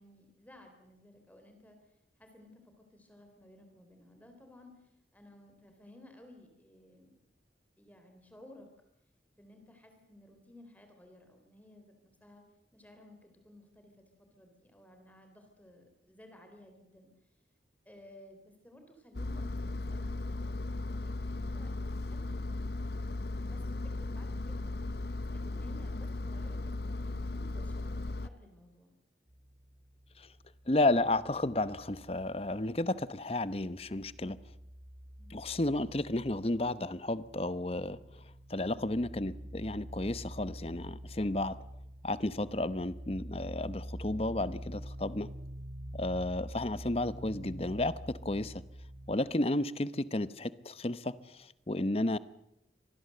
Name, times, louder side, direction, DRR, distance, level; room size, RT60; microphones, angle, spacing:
voice 1, 0.0-1.8 2.2-7.2 7.8-8.7 9.4-12.4 12.7-17.1 17.9-21.7 22.0-22.6 23.3-24.7 25.1-28.9 35.2-35.4 38.7-39.0, left 1 dB, 10° left, 5 dB, 3.8 m, -57 dB
Engine, 19.1-28.3, left 2 dB, 60° left, 0.8 m, -36 dB
sound 1, 29.3-33.1 33.4-49.2, equal, 25° right, 1.4 m, -47 dB
voice 2, 30.7-34.4 35.3-38.0 38.5-41.6 42.0-45.3 45.9-48.5 49.1-52.2, left 2 dB, 35° left, 15 dB, 0.9 m, -32 dB
25.5 x 19.5 x 7.8 m, 0.82 s
head